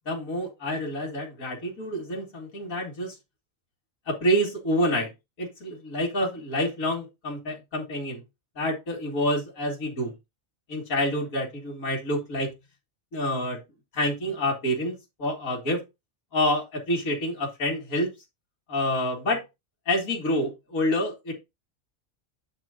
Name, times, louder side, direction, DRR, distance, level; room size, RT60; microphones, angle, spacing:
voice 1, 0.1-3.2 4.1-5.1 5.4-8.2 8.6-10.2 10.7-12.5 13.1-13.6 13.9-15.8 16.3-18.1 18.7-19.4 19.9-21.3, equal, 80° left, -1 dB, 2.5 m, -27 dB
8.9 x 3.3 x 5.0 m, 0.22 s
omnidirectional pair, 1.4 m